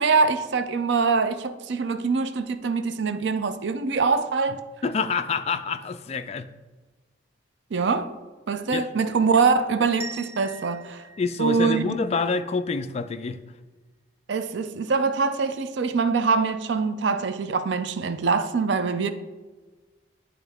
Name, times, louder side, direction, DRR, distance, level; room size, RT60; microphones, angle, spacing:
voice 1, 0.0-4.6 7.7-8.1 8.5-11.0 11.4-11.9 14.3-19.1, right 4 dB, 65° right, 0.4 m, -24 dB
voice 2, 4.8-6.5 8.7-8.9 11.2-13.4, left 4 dB, 35° left, 0.3 m, -27 dB
sound 1, 10.0-12.8, right 3 dB, 15° right, 0.6 m, -43 dB
10.0 x 3.6 x 3.5 m
head